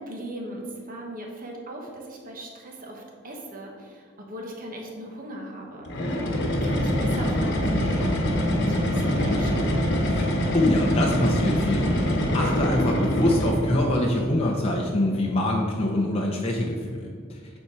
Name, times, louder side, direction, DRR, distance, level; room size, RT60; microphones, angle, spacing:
voice 1, 0.0-6.2 6.6-9.9, right 1 dB, 45° right, 0 dB, 1.3 m, -38 dB
sound 1, 5.9-13.9, equal, 55° left, 1.1 m, -24 dB
voice 2, 10.5-11.9 12.3-17.1, left 1 dB, 30° left, -2 dB, 0.7 m, -24 dB
8.5 x 4.5 x 4.7 m, 2.1 s
head